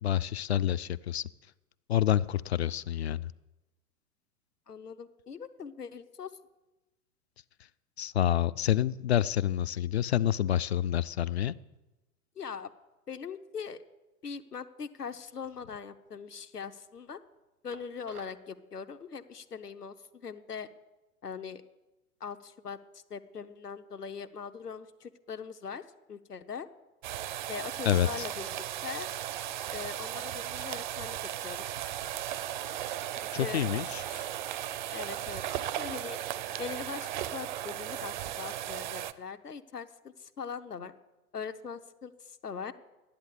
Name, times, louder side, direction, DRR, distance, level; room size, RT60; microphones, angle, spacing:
voice 1, 0.0-1.3 1.9-3.3 8.0-11.6 27.8-28.3 33.3-34.0, left 11 dB, 45° left, 16 dB, 0.4 m, -28 dB
voice 2, 4.7-6.3 12.4-12.7 13.1-13.8 14.2-17.2 17.6-20.7 21.2-21.6 22.2-25.8 26.1-26.7 27.5-28.6 28.8-29.1 29.7-31.2 31.4-31.7 33.2-33.7 34.1-34.3 34.9-36.2 36.6-39.9 40.2-40.9 41.3-42.7, left 6 dB, 80° left, 8 dB, 1.0 m, -41 dB
sound 1, 17.7-18.5, right 7 dB, 75° right, 1.0 m, -52 dB
sound 2, 27.0-39.1, right 12 dB, 35° right, 0.5 m, -36 dB
12.0 x 10.0 x 8.1 m, 1.1 s
figure-of-eight pair, 100°, 46 cm